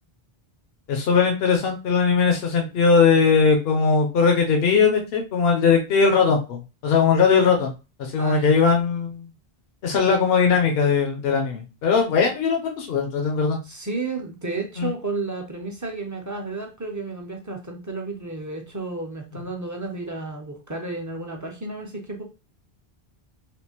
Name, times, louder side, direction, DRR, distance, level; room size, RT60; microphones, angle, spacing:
voice 1, 0.9-7.7 8.0-9.3 9.8-13.6 14.8-14.9, left 5 dB, 75° left, 2 dB, 0.9 m, -20 dB
voice 2, 8.2-8.5 13.6-22.2, right 3 dB, 25° right, 2 dB, 0.5 m, -32 dB
3.5 x 2.7 x 2.9 m, 0.30 s
omnidirectional pair, 1.0 m